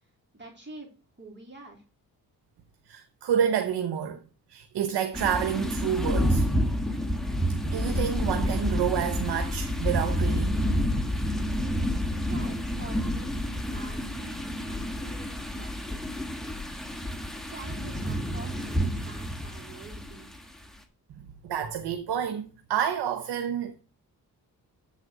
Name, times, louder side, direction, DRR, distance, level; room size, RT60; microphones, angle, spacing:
voice 1, 0.3-0.9 1.2-1.8 12.2-16.7 17.5-20.3, right 2 dB, 25° right, 3.2 m, -47 dB
voice 2, 2.9-4.2 4.5-6.5 7.6-10.7 21.2-23.8, right 9 dB, 85° right, 0.9 m, -29 dB
sound 1, 5.1-20.4, equal, ahead, 1.4 m, -29 dB
8.1 x 4.1 x 6.1 m
cardioid pair, 60°, 40 cm